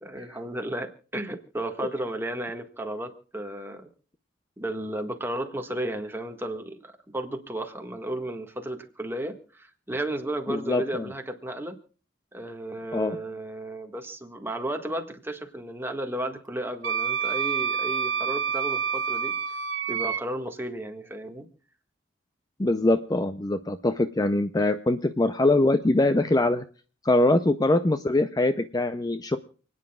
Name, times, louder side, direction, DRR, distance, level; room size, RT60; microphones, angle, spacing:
voice 1, 0.0-3.9 4.6-11.7 12.3-19.3 19.9-21.5, right 1 dB, 10° right, 4 dB, 1.6 m, -33 dB
voice 2, 10.5-11.1 12.9-13.2 22.6-26.6 27.0-29.4, left 2 dB, 20° left, 10 dB, 0.5 m, -23 dB
Wind instrument woodwind instrument, 16.8-20.2, right 7 dB, 80° right, 1.1 m, -28 dB
29.0 x 9.7 x 2.3 m, 0.39 s
head